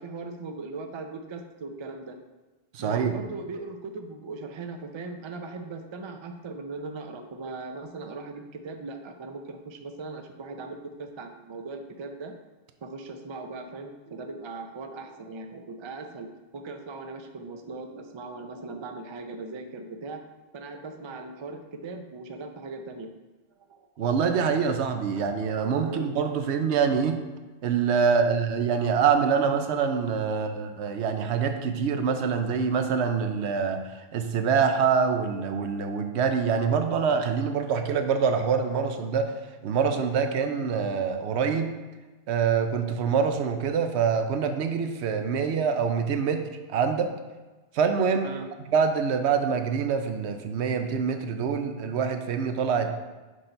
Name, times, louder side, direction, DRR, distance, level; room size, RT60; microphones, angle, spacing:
voice 1, 0.0-2.2 2.8-12.4 12.8-16.3 16.5-20.2 20.5-23.1 23.7-23.8 25.8-26.3 48.2-48.5, right 3 dB, 50° right, 5 dB, 0.3 m, -39 dB
voice 2, 2.7-3.2 24.0-27.2 27.6-33.8 34.1-39.3 39.6-41.8 42.3-47.1 47.7-48.3 48.7-53.0, right 6 dB, 75° right, 7 dB, 0.9 m, -25 dB
6.4 x 3.9 x 4.3 m, 1.2 s
omnidirectional pair, 1.2 m